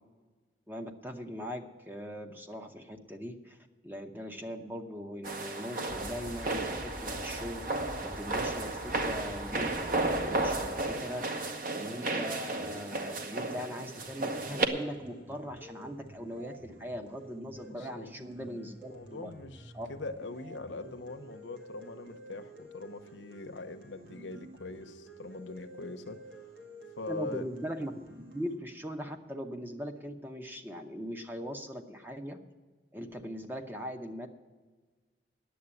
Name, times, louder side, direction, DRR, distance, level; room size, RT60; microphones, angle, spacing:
voice 1, 0.7-3.6 3.8-7.6 8.0-11.3 11.7-19.3 19.7-19.9 27.1-28.0 28.3-32.4 32.9-34.3, equal, 10° right, 5 dB, 0.8 m, -40 dB
sound 1, 5.2-14.7, right 2 dB, 50° right, 1.0 m, -33 dB
sound 2, 5.9-10.9, left 1 dB, 5° left, 0.3 m, -45 dB
sound 3, 12.6-28.6, right 1 dB, 80° right, 1.9 m, -51 dB
voice 2, 17.7-18.1 18.9-26.2 27.0-27.4, left 3 dB, 90° left, 8 dB, 0.9 m, -42 dB
10.0 x 8.0 x 9.7 m, 1.3 s
head